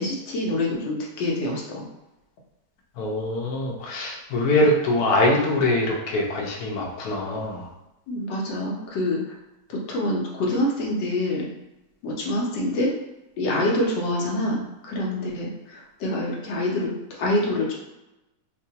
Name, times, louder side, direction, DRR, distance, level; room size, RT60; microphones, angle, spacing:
voice 1, 0.0-1.8 8.1-9.2 9.7-11.5 12.0-12.9 13.4-17.7, left 1 dB, 85° left, -2 dB, 1.5 m, -26 dB
voice 2, 3.0-7.7, left 1 dB, 65° left, -1 dB, 1.1 m, -23 dB
4.6 x 2.2 x 2.8 m, 0.96 s
omnidirectional pair, 1.9 m